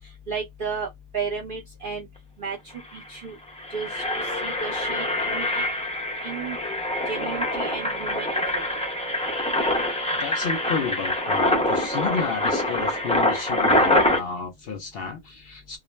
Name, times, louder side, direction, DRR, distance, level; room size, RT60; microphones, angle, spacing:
voice 1, 0.3-2.1 2.4-2.6 2.9-3.4 3.7-4.0 4.4-5.7 6.2-6.6 7.1-8.6, right 5 dB, 50° right, 0.8 m, -33 dB
Engine, 2.5-2.6 2.8-3.0 3.5-14.2, left 1 dB, 10° left, 0.4 m, -25 dB
voice 2, 10.1-15.8, left 5 dB, 60° left, 0.7 m, -31 dB
2.4 x 2.1 x 3.0 m
omnidirectional pair, 1.2 m